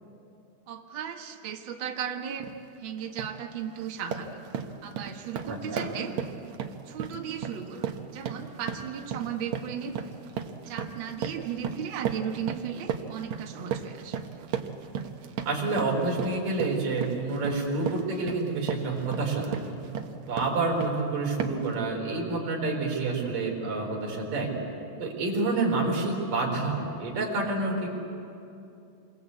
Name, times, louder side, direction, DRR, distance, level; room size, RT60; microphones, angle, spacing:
voice 1, 0.7-2.5 2.8-4.3 4.8-6.1 6.9-9.9 10.7-14.2, right 8 dB, 75° right, 2 dB, 1.1 m, -36 dB
sound 1, 2.4-2.6 3.0-3.4 3.8-21.0 21.4-21.7, right 8 dB, 90° right, 1.5 m, -35 dB
voice 2, 5.5-5.9 15.5-19.6 20.3-24.5 25.0-27.9, right 3 dB, 55° right, -1 dB, 5.7 m, -28 dB
28.0 x 22.5 x 8.3 m, 2.7 s
omnidirectional pair, 4.9 m